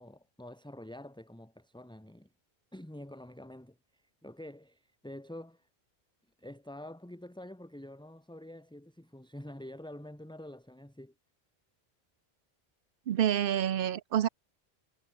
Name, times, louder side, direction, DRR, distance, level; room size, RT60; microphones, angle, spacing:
voice 1, 0.0-2.3 2.7-5.7 6.4-11.1, left 1 dB, 5° left, 2.0 m, -47 dB
voice 2, 13.1-14.3, right 10 dB, 65° right, 0.7 m, -28 dB
omnidirectional pair, 1.1 m